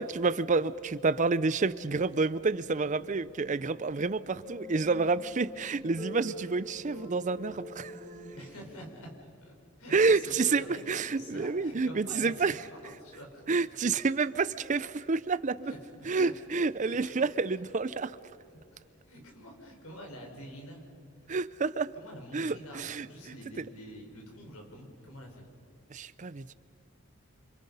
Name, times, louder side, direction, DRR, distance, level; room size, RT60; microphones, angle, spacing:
voice 1, 0.0-7.9 9.9-12.5 13.5-15.7 16.1-18.2 21.3-21.9 22.3-23.1 25.9-26.4, right 4 dB, 35° right, 16 dB, 0.5 m, -29 dB
sound 1, 1.2-8.4, equal, 20° left, 4.6 m, -46 dB
voice 2, 8.3-13.4 15.6-16.3 16.8-17.2 17.5-17.6 18.5-18.8 19.1-20.9 21.2-21.3 21.9-25.5, equal, 85° left, 1 dB, 4.8 m, -47 dB
29.0 x 26.5 x 5.5 m, 2.5 s
head